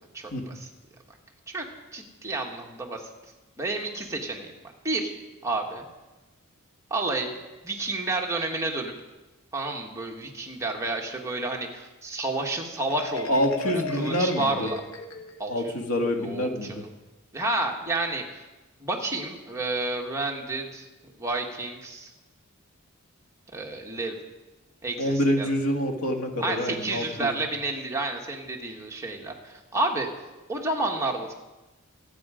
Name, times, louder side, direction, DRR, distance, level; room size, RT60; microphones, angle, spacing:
voice 1, 0.1-0.7 1.5-1.6 1.9-3.1 3.6-4.5 4.8-5.1 5.4-5.9 6.9-7.3 7.6-8.9 9.5-14.8 15.4-15.7 16.2-16.8 17.3-18.4 18.8-20.8 21.2-22.1 23.5-24.1 24.8-25.5 26.4-30.1 30.5-31.3, right 2 dB, 15° right, 0 dB, 1.6 m, -30 dB
Marimba xylophone, 12.8-15.6, left 4 dB, 65° left, 1.5 m, -36 dB
voice 2, 13.3-14.7 15.5-16.8 25.0-27.3, equal, 90° left, 4 dB, 1.8 m, -26 dB
25.0 x 8.8 x 5.1 m, 1.1 s
head